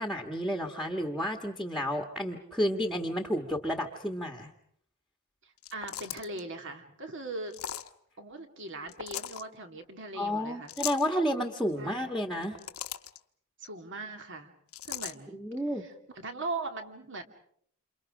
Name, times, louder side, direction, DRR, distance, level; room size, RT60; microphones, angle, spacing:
voice 1, 0.0-4.5 10.2-12.6 15.3-15.8, equal, ahead, 4 dB, 1.6 m, -31 dB
voice 2, 5.4-7.6 8.2-10.7 11.7-12.1 13.6-14.5 14.8-15.4 15.8-15.9 16.2-17.2, right 2 dB, 60° right, 6 dB, 2.6 m, -40 dB
sound 1, 5.6-6.4 7.5-7.9 8.9-9.4 10.7-11.1 12.3-13.2 14.7-15.1, left 11 dB, 85° left, 1.1 m, -38 dB
28.5 x 28.5 x 5.0 m, 0.65 s
head